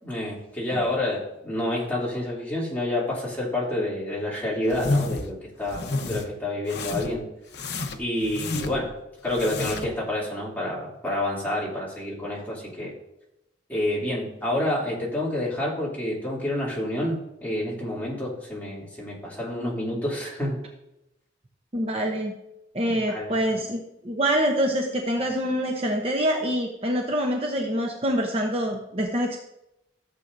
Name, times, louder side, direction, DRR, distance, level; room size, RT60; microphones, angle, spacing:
voice 1, 0.0-7.3 7.9-8.9 9.2-12.9 13.7-20.6 22.9-23.4, left 1 dB, 10° left, -6 dB, 2.9 m, -28 dB
sound 1, 4.7-5.3 5.7-6.2 6.7-7.2 7.5-8.9 9.3-10.0, left 2 dB, 65° left, 0.9 m, -30 dB
voice 2, 21.7-22.3 22.7-29.4, equal, 30° right, 1 dB, 0.8 m, -25 dB
14.5 x 7.6 x 2.7 m, 0.89 s
head